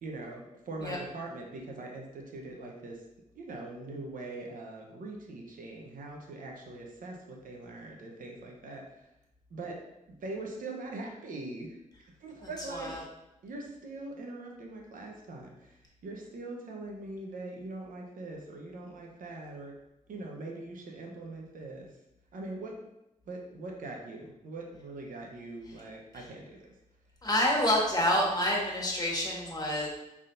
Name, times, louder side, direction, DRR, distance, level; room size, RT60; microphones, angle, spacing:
voice 1, 0.0-3.0 3.3-9.0 9.5-9.8 10.1-11.8 12.2-13.0 13.4-19.7 20.1-21.9 22.3-22.8 23.3-26.7, right 2 dB, 85° right, 0 dB, 0.8 m, -42 dB
voice 2, 12.4-13.0 27.2-29.9, left 1 dB, 30° left, -2 dB, 1.5 m, -28 dB
5.5 x 3.6 x 2.5 m, 0.90 s
cardioid pair, 60°, 14 cm